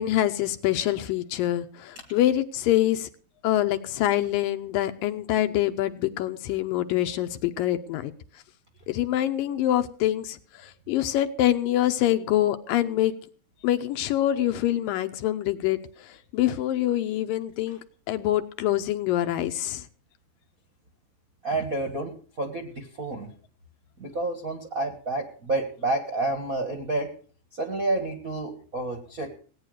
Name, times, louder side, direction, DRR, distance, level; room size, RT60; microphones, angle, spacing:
voice 1, 0.0-3.1 3.4-8.1 8.9-10.4 10.6-13.1 13.6-15.8 16.3-17.8 18.1-19.8, left 13 dB, 75° left, 9 dB, 2.3 m, -25 dB
voice 2, 21.4-23.3 24.0-27.1 27.5-29.3, right 2 dB, 45° right, 2 dB, 1.1 m, -29 dB
17.5 x 9.5 x 6.4 m, 0.43 s
omnidirectional pair, 4.3 m